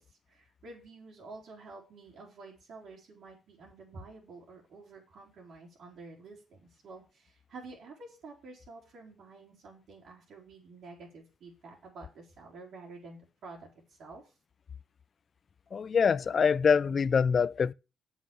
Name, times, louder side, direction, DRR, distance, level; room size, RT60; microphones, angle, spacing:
voice 1, 0.0-14.2, right 3 dB, 70° right, 3.6 m, -50 dB
voice 2, 15.7-17.7, left 6 dB, 45° left, 0.4 m, -25 dB
7.6 x 6.2 x 6.8 m
cardioid pair, 90°, 0 cm